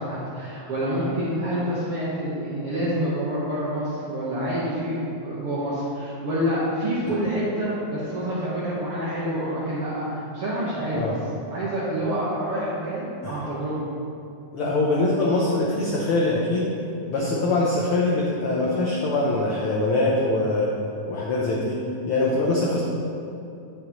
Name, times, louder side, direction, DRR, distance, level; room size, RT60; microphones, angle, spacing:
voice 1, 0.0-11.0 11.5-13.8 17.1-17.3, equal, 55° right, -8 dB, 1.8 m, -27 dB
voice 2, 14.5-16.7 17.1-20.7 21.1-22.8, left 2 dB, 80° left, -4 dB, 1.2 m, -23 dB
9.8 x 8.1 x 3.1 m, 2.7 s
omnidirectional pair, 3.6 m